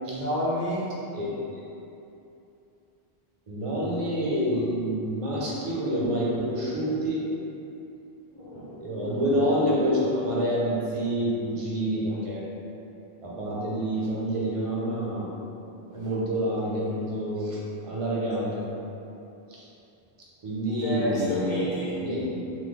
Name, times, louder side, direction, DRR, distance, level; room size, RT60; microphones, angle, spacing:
voice 1, 0.1-0.8 8.3-8.8 12.1-12.2 14.0-14.2 20.8-22.0, left 1 dB, 50° left, -10 dB, 1.0 m, -30 dB
voice 2, 3.5-7.3 8.8-12.4 13.2-15.3 15.9-17.6 17.8-18.7 19.5-19.6 20.4-22.6, equal, 45° right, -5 dB, 0.5 m, -27 dB
3.0 x 2.1 x 3.5 m, 2.8 s
omnidirectional pair, 1.0 m